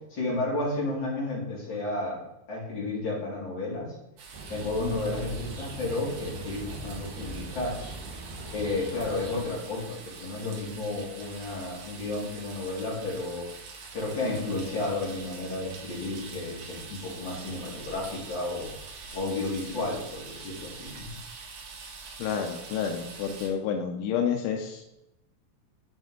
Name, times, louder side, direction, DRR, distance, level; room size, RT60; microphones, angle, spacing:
voice 1, 0.1-2.2 2.5-3.9 4.5-7.8 8.5-13.4 13.9-18.7 19.1-21.1, left 2 dB, 35° left, -6 dB, 3.4 m, -32 dB
sound 1, 4.2-23.5, right 4 dB, 75° right, 2.7 m, -45 dB
sound 2, 4.3-9.4, right 2 dB, 60° right, 2.0 m, -41 dB
voice 2, 22.2-24.8, left 7 dB, 85° left, 4 dB, 2.2 m, -29 dB
7.9 x 5.1 x 3.8 m, 0.87 s
omnidirectional pair, 3.7 m